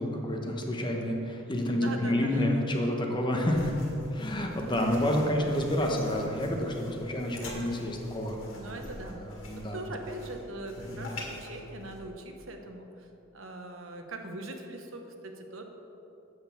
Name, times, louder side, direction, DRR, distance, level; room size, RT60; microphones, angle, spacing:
voice 1, 0.0-3.7 4.1-8.4 9.1-9.8 10.9-11.1, left 1 dB, 25° left, 1 dB, 1.0 m, -29 dB
voice 2, 1.7-2.5 8.5-9.2 9.5-13.1 13.3-15.6, right 2 dB, 75° right, 4 dB, 1.0 m, -41 dB
sound 1, 3.5-12.0, left 2 dB, 70° left, 2.0 m, -45 dB
7.9 x 6.7 x 6.9 m, 3.0 s
head